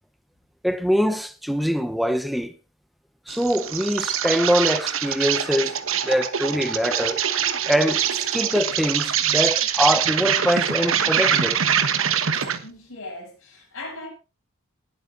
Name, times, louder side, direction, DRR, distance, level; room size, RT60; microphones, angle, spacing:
voice 1, 0.6-2.5 3.3-5.8 6.0-7.2 7.7-11.6, equal, ahead, 0.9 m, -23 dB
Insect, 3.3-12.7, right 8 dB, 70° right, 1.3 m, -24 dB
voice 2, 12.6-14.1, left 2 dB, 65° left, 7.5 m, -38 dB
19.5 x 8.2 x 4.0 m
head